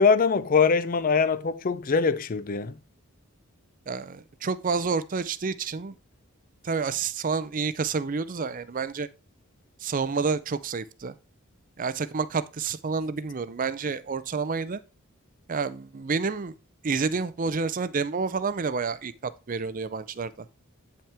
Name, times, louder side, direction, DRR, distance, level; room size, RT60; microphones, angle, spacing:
voice 1, 0.0-2.7, left 5 dB, 40° left, 0.4 m, -22 dB
voice 2, 3.9-6.0 6.6-9.1 9.8-11.1 11.8-14.8 15.5-16.5 16.8-20.5, right 4 dB, 35° right, 0.5 m, -29 dB
8.8 x 5.7 x 3.4 m
head